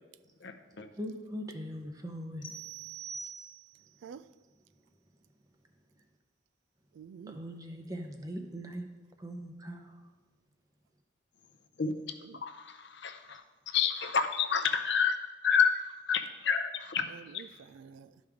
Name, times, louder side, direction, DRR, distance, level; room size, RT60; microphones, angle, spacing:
voice 1, 0.4-0.9 11.8-11.9 12.3-15.2 15.4-17.1, left 6 dB, 65° left, 0.6 m, -29 dB
voice 2, 1.0-2.5 7.3-8.9 9.2-9.9, equal, 20° right, 0.7 m, -40 dB
sound 1, 2.4-3.9, right 5 dB, 90° left, 1.1 m, -44 dB
voice 3, 6.9-7.4 11.8-12.4 17.1-18.2, right 7 dB, 80° right, 0.3 m, -50 dB
12.0 x 5.2 x 3.5 m
head